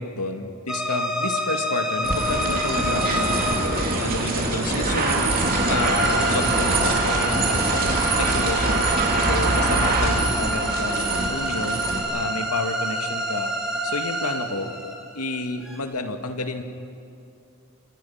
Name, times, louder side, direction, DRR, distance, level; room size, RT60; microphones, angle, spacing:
voice 1, 0.0-3.6 4.0-5.4 5.7-8.9 9.2-11.9 12.1-13.5 13.8-14.8 15.1-16.6, left 2 dB, 85° left, 5 dB, 2.1 m, -30 dB
sound 1, 0.7-15.8, right 1 dB, 5° right, 2.9 m, -28 dB
sound 2, 2.0-12.0, right 2 dB, 40° right, 3.4 m, -23 dB
28.0 x 27.5 x 5.8 m, 2.6 s
head